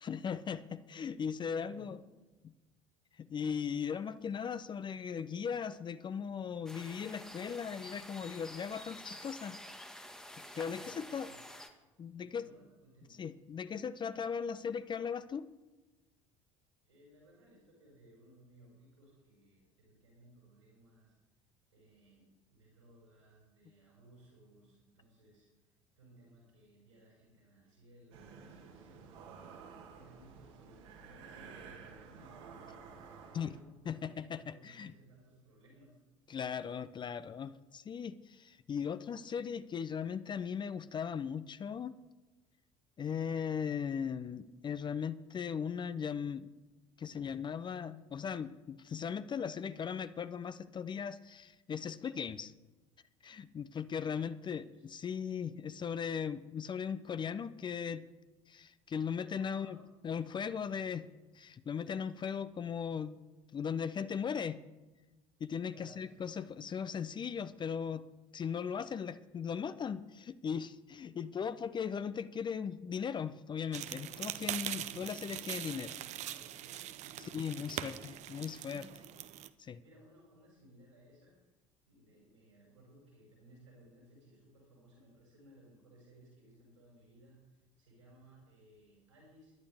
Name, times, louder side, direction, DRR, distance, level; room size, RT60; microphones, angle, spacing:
voice 1, 0.0-2.0 3.2-9.6 10.5-11.3 12.0-12.5 13.2-15.5 33.3-33.5 33.9-34.9 36.3-42.0 43.0-46.5 47.0-52.5 53.2-58.1 58.5-59.8 60.0-61.1 61.3-63.2 63.5-64.6 65.4-68.1 68.3-75.9 77.3-78.8 79.6-79.8, left 7 dB, 30° left, 14 dB, 0.6 m, -38 dB
voice 2, 1.6-2.3 10.7-11.4 12.1-13.2 16.8-21.1 21.7-36.0 54.0-54.9 59.3-59.9 60.4-61.1 65.7-66.5 74.6-78.2 78.7-79.1 79.8-81.4 81.9-89.5, right 1 dB, 80° right, -5 dB, 5.8 m, -61 dB
sound 1, 6.7-11.7, left 1 dB, 5° left, 1.5 m, -49 dB
sound 2, 28.1-33.6, right 5 dB, 65° right, 2.0 m, -52 dB
sound 3, 73.7-79.5, right 12 dB, 45° right, 0.7 m, -42 dB
21.0 x 11.5 x 3.6 m, 1.1 s
figure-of-eight pair, 60°, 16 cm